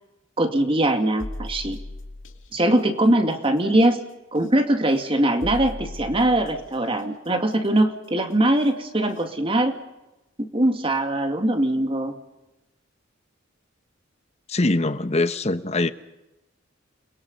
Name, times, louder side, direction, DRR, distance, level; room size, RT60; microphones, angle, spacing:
voice 1, 0.4-1.8 2.5-4.0 4.3-9.7 10.4-12.1, right 1 dB, 25° right, 6 dB, 2.1 m, -21 dB
sound 1, 1.2-2.5 4.3-4.5 5.4-6.7 8.6-8.7 9.2-9.3, left 1 dB, 75° left, 2.4 m, -36 dB
voice 2, 14.5-15.9, left 2 dB, 35° left, 12 dB, 1.0 m, -22 dB
29.5 x 22.0 x 5.3 m, 0.98 s
head